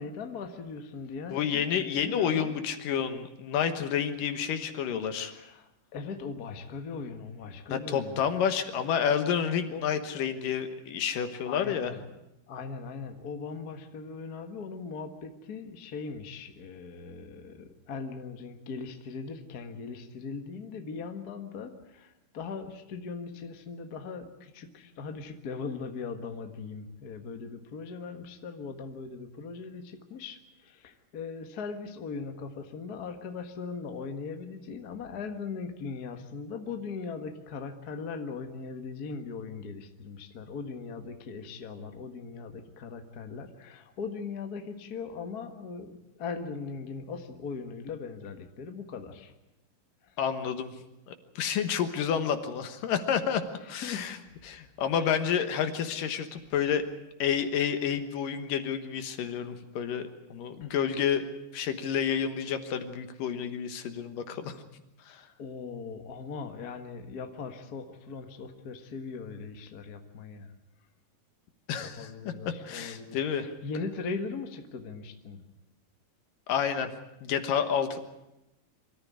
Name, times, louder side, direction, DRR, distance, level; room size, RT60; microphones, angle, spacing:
voice 1, 0.0-1.6 2.0-2.6 5.2-5.6 5.9-8.2 9.7-9.9 11.5-12.0 12.5-49.3 50.1-50.2 53.6-54.2 55.0-55.1 60.6-60.7 65.4-70.5 71.8-75.4, left 5 dB, 50° left, 6 dB, 1.1 m, -39 dB
voice 2, 1.3-5.3 7.7-11.9 50.2-50.7 51.1-53.4 53.7-54.2 54.5-56.9 57.2-61.3 61.5-64.6 65.1-65.2 71.7-73.5 76.5-76.9 77.2-78.0, left 8 dB, 70° left, 8 dB, 2.8 m, -29 dB
25.0 x 14.0 x 9.6 m, 0.91 s
omnidirectional pair, 4.3 m